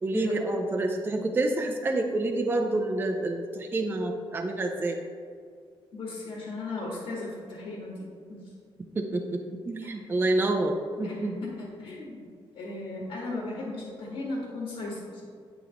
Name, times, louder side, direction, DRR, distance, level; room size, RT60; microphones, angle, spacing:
voice 1, 0.0-5.0 9.0-11.4, right 2 dB, 20° right, 3 dB, 0.5 m, -28 dB
voice 2, 5.9-8.4 9.8-9.9 11.0-12.2 12.5-15.2, left 2 dB, 75° left, -4 dB, 1.7 m, -36 dB
9.1 x 4.8 x 3.5 m, 2.1 s
cardioid pair, 145°, 10 cm